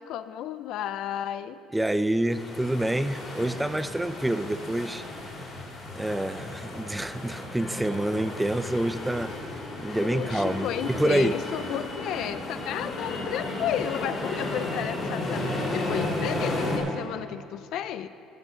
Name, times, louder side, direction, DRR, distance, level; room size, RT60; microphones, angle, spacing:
voice 1, 0.0-1.6 10.0-18.1, left 10 dB, 65° left, 12 dB, 0.4 m, -32 dB
voice 2, 1.7-5.1 5.4-5.5 5.9-9.3 9.8-11.4, right 1 dB, 5° right, 12 dB, 0.4 m, -27 dB
sound 1, 2.3-16.8, left 1 dB, 35° left, 2.9 m, -34 dB
13.5 x 6.3 x 6.6 m, 2.6 s
cardioid pair, 110°, 0 cm